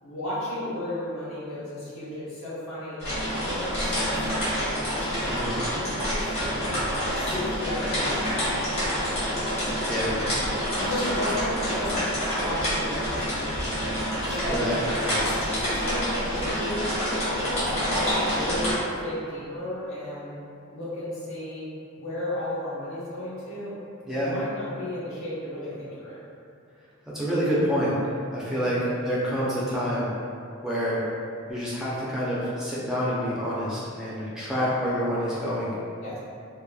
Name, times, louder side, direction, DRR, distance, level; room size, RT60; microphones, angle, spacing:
voice 1, 0.0-3.0 3.4-6.8 7.1-8.8 9.9-10.3 10.8-12.0 12.3-13.8 14.3-14.7 15.2-20.3 20.7-21.7 22.0-23.8 24.1-26.2 28.6-28.9 36.0-36.2, left 1 dB, 70° left, -10 dB, 0.9 m, -34 dB
sound 1, 3.0-18.7, equal, 30° left, 0.9 m, -27 dB
voice 2, 5.3-5.6 9.9-10.1 14.5-15.2 24.1-24.3 27.1-27.9 28.3-28.8 29.0-30.1 30.6-31.0 31.5-35.7, equal, 5° right, -9 dB, 0.4 m, -27 dB
2.9 x 2.1 x 2.2 m, 2.5 s
head